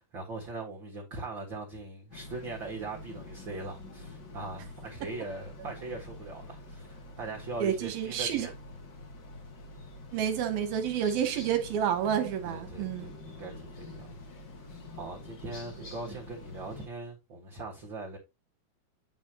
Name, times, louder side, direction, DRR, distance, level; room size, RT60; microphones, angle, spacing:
voice 1, 0.0-8.5 12.4-14.2 14.6-18.2, right 3 dB, 45° right, 1.5 m, -41 dB
sound 1, 2.1-16.9, left 2 dB, 45° left, 1.5 m, -46 dB
voice 2, 7.6-8.5 10.1-13.1, right 9 dB, 70° right, 2.6 m, -29 dB
8.4 x 7.4 x 2.9 m
omnidirectional pair, 4.8 m